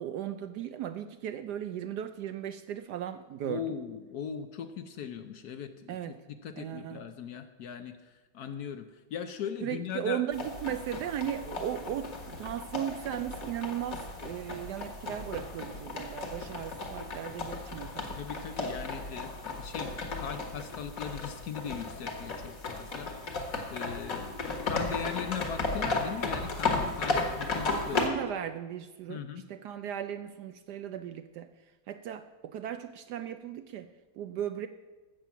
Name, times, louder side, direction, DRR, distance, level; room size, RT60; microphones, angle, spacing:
voice 1, 0.0-3.7 5.9-6.2 6.6-7.1 9.6-18.2 27.9-31.5 31.9-33.9 34.2-34.7, right 10 dB, 75° right, 10 dB, 1.0 m, -36 dB
voice 2, 3.4-6.0 6.4-10.2 18.2-19.9 20.2-23.4 23.7-28.2 29.1-29.4, left 7 dB, 65° left, 9 dB, 1.0 m, -39 dB
sound 1, 10.3-28.1, left 3 dB, 45° left, 1.9 m, -35 dB
13.0 x 7.6 x 7.0 m, 1.2 s
omnidirectional pair, 2.1 m